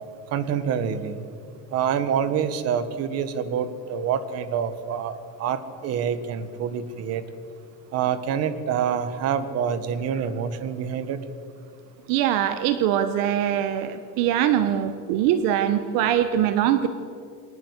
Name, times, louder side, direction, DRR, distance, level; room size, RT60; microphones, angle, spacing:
voice 1, 0.3-1.1 1.7-7.2 7.9-11.2, right 8 dB, 40° right, 12 dB, 1.4 m, -26 dB
voice 2, 12.1-16.9, right 10 dB, 60° right, 11 dB, 1.1 m, -22 dB
23.0 x 19.0 x 8.2 m, 2.4 s
cardioid pair, 170°, 39 cm